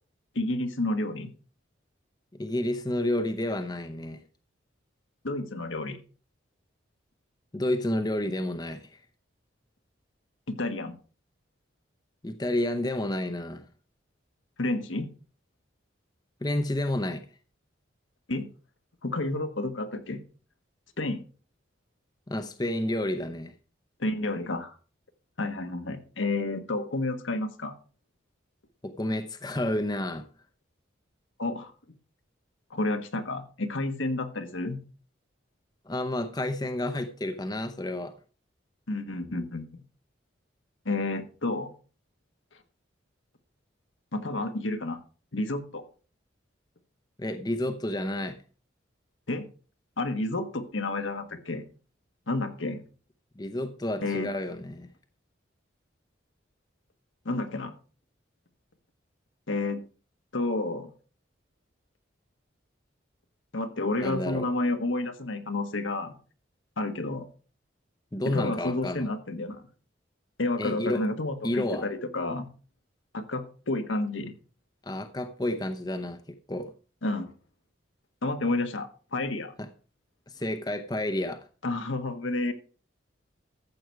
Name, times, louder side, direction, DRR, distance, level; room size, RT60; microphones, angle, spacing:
voice 1, 0.3-1.3 5.2-6.0 10.5-11.0 14.6-15.1 18.3-18.5 19.0-20.2 21.0-21.2 24.0-24.7 25.4-27.7 31.4-31.7 32.7-34.8 38.9-39.8 40.8-41.7 44.1-45.0 45.3-45.8 49.3-49.5 50.0-51.6 52.3-52.8 54.0-54.3 57.2-57.7 59.5-59.8 60.3-60.9 63.5-66.2 66.8-67.3 68.2-69.6 70.4-72.5 73.1-74.3 77.0-77.3 78.2-79.5 81.6-82.5, left 2 dB, 80° left, 1.5 m, -30 dB
voice 2, 2.4-4.2 7.5-9.0 12.2-13.6 16.4-17.2 22.3-23.5 28.8-30.3 35.9-38.1 47.2-48.4 53.4-54.9 64.0-64.5 68.1-69.1 70.6-71.0 71.4-71.9 74.8-76.7 79.6-79.7 80.3-81.4, left 1 dB, 20° left, 0.7 m, -30 dB
14.0 x 7.7 x 4.6 m
head